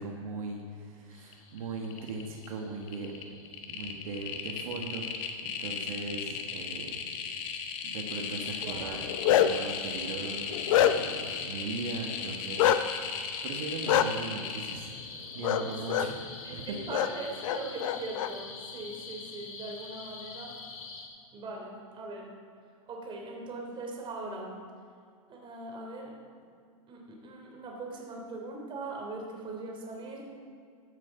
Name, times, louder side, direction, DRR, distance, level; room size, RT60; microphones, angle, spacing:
voice 1, 0.0-3.1 3.7-7.0 7.8-10.6 10.8-12.7 13.0-14.9 15.3-16.2 16.5-16.8, right 3 dB, 75° right, 1 dB, 1.7 m, -39 dB
sound 1, 1.1-21.1, left 4 dB, 85° left, 2.7 m, -46 dB
sound 2, 1.3-1.6 1.8-2.5 2.8-14.7, left 7 dB, 50° left, 1.6 m, -37 dB
Bark, 8.9-9.7 10.2-11.2 12.6-12.8 13.9-14.0 15.4-15.6 15.9-16.1 16.9-17.1 17.4-18.3, left 11 dB, 65° left, 0.7 m, -24 dB
voice 2, 15.5-16.1 16.4-20.6 21.3-22.3 22.9-24.5 25.3-26.1 26.9-30.3, right 3 dB, 30° right, 0 dB, 3.2 m, -40 dB
14.5 x 7.6 x 5.8 m, 2.3 s
hypercardioid pair, 120°, 18 cm